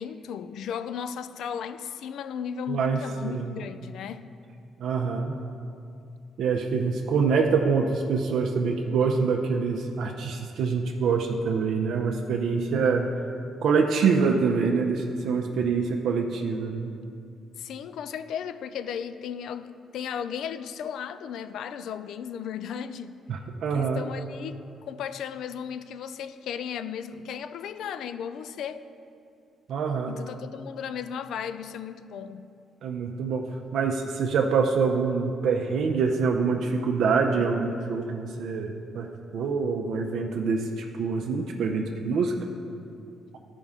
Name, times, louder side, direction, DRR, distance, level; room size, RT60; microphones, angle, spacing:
voice 1, 0.0-4.3 17.6-23.2 23.7-28.9 30.1-32.5, left 8 dB, 75° left, 12 dB, 0.4 m, -35 dB
voice 2, 2.7-3.6 4.8-5.4 6.4-13.1 13.6-16.9 23.3-24.0 29.7-30.1 32.8-33.4 33.7-42.3, right 5 dB, 75° right, 2 dB, 0.6 m, -25 dB
12.5 x 5.3 x 3.6 m, 2.5 s
cardioid pair, 90°, 0 cm